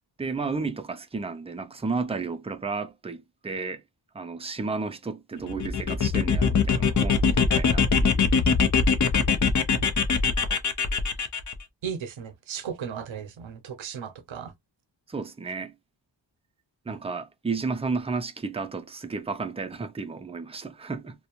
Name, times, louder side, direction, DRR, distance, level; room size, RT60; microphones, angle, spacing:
voice 1, 0.2-3.8 4.1-8.3 15.1-15.7 16.9-21.2, right 4 dB, 15° right, 0.3 m, -32 dB
sound 1, 5.5-11.5, left 5 dB, 40° left, 0.5 m, -23 dB
voice 2, 11.8-14.5 16.9-17.0, right 7 dB, 85° right, 0.6 m, -36 dB
2.4 x 2.1 x 2.9 m
wide cardioid pair, 95°, 46 cm